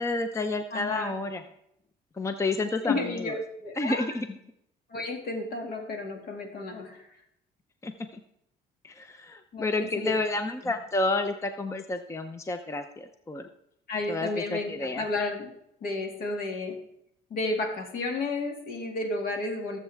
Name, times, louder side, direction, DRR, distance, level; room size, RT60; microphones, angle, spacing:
voice 1, 0.0-1.4 2.1-3.3 3.8-4.4 7.8-8.2 8.8-13.5 14.1-15.0, left 2 dB, 15° left, 8 dB, 0.6 m, -30 dB
voice 2, 0.7-1.1 2.8-3.3 3.6-4.1 4.9-7.0 9.5-10.2 10.6-10.7 13.9-15.5 15.8-16.7 17.3-19.8, left 2 dB, 60° left, 3 dB, 2.3 m, -32 dB
16.5 x 7.5 x 3.5 m, 0.77 s
cardioid pair, 110°, 17 cm